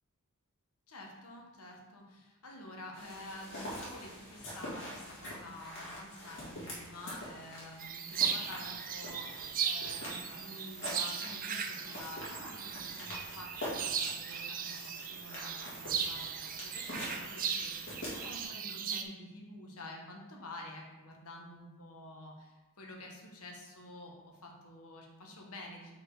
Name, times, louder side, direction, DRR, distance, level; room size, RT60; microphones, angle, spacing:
voice 1, 0.9-25.9, left 1 dB, 75° left, 0 dB, 1.2 m, -49 dB
sound 1, 2.9-18.5, equal, 55° left, 2.1 m, -45 dB
sound 2, 7.8-19.0, right 7 dB, 40° right, 0.5 m, -37 dB
5.0 x 4.3 x 4.7 m, 1.1 s
head